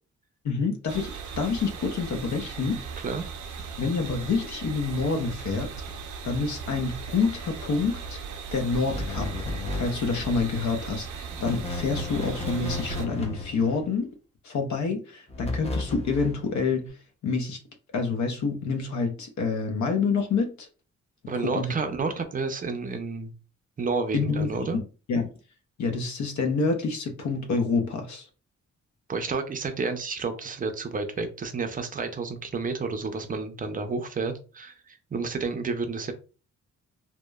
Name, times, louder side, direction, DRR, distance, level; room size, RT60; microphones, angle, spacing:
voice 1, 0.4-2.8 3.8-5.7 6.2-8.2 8.5-9.3 9.7-14.1 14.4-16.9 17.2-17.6 17.9-20.7 21.4-21.7 24.1-24.8 25.1-25.3 25.8-28.3, left 4 dB, 70° left, 0.7 m, -27 dB
sound 1, 0.9-13.1, right 5 dB, 90° right, 0.5 m, -38 dB
sound 2, 8.9-10.4 11.3-13.9 15.3-16.5, left 2 dB, 20° left, 0.6 m, -34 dB
voice 2, 21.3-23.3 23.8-24.8 29.1-36.1, right 4 dB, 30° right, 0.4 m, -30 dB
2.8 x 2.1 x 2.2 m
cardioid pair, 110°, 29 cm